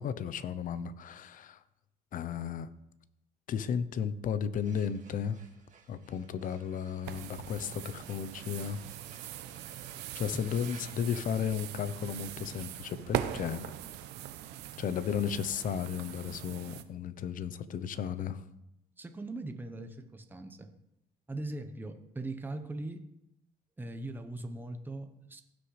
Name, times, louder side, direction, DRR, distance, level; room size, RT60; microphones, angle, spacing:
voice 1, 0.0-1.6 2.1-2.7 3.5-5.4 5.9-8.8 10.1-13.7 14.8-18.4, left 7 dB, 55° left, 15 dB, 0.7 m, -34 dB
sound 1, 4.4-11.9, right 5 dB, 50° right, 1.9 m, -57 dB
sound 2, 7.0-16.8, right 12 dB, 85° right, 0.7 m, -41 dB
voice 2, 19.0-20.7 21.3-23.0 23.8-25.4, right 2 dB, 10° right, 6 dB, 0.9 m, -40 dB
16.5 x 6.2 x 3.2 m, 0.83 s
cardioid pair, 110°, 17 cm